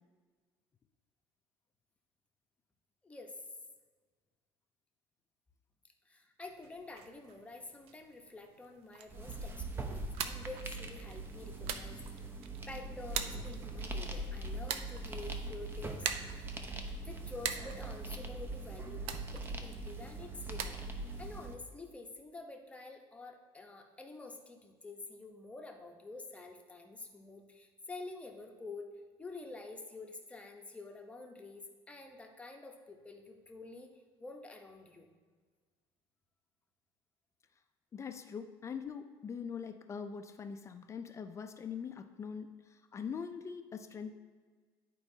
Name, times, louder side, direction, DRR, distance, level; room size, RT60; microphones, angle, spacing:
voice 1, 3.0-3.4 6.1-12.3 12.7-16.1 17.0-20.8 21.2-28.9 29.2-35.1, left 3 dB, 10° left, 2 dB, 0.8 m, -48 dB
sound 1, 6.5-20.7, right 8 dB, 65° right, 0.5 m, -45 dB
sound 2, 9.1-21.5, right 2 dB, 20° right, 0.7 m, -42 dB
voice 2, 37.9-44.1, left 6 dB, 30° left, 8 dB, 0.4 m, -43 dB
11.5 x 4.5 x 2.7 m, 1.5 s
cardioid pair, 115°, 11 cm